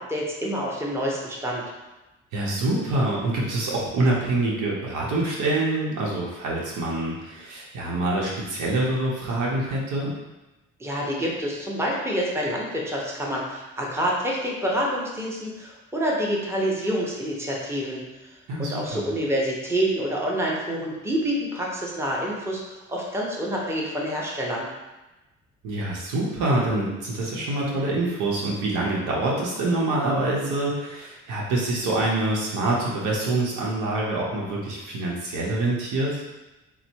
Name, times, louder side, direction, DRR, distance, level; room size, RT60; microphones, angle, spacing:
voice 1, 0.1-1.6 10.8-18.0 18.6-24.7, equal, 10° right, -3 dB, 0.9 m, -27 dB
voice 2, 2.3-10.1 18.5-19.1 25.6-36.2, right 2 dB, 85° right, -4 dB, 0.9 m, -25 dB
4.1 x 2.1 x 4.4 m, 1.1 s
cardioid pair, 90°, 30 cm